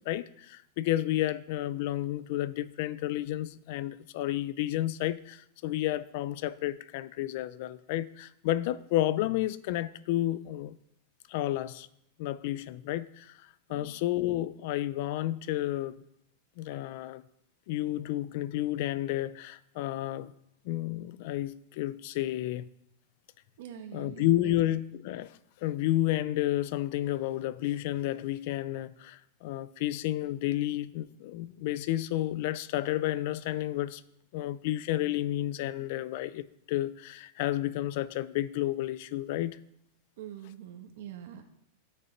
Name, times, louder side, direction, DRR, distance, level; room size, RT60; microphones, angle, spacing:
voice 1, 0.0-10.8 11.3-11.9 12.2-13.4 13.7-16.0 16.6-17.2 17.7-20.3 20.6-22.7 23.9-34.0 34.3-39.6, left 14 dB, 60° left, 0.6 m, -31 dB
voice 2, 23.6-24.3 40.2-41.4, right 10 dB, 70° right, 1.4 m, -44 dB
15.0 x 6.7 x 4.5 m
supercardioid pair, 140°, 0 cm